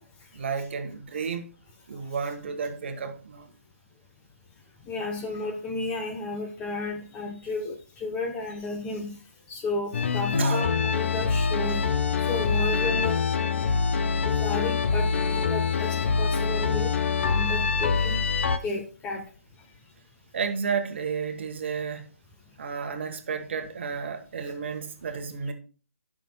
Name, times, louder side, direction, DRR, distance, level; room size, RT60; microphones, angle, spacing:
voice 1, 0.3-1.5 1.9-3.5 10.4-10.7 20.3-22.1 22.6-25.5, right 6 dB, 50° right, 1.2 m, -32 dB
voice 2, 4.9-9.2 9.5-13.2 13.9-19.3, left 3 dB, 15° left, 0.9 m, -33 dB
sound 1, 9.9-18.6, left 5 dB, 55° left, 0.7 m, -25 dB
16.0 x 6.1 x 2.2 m
hypercardioid pair, 160°, 8 cm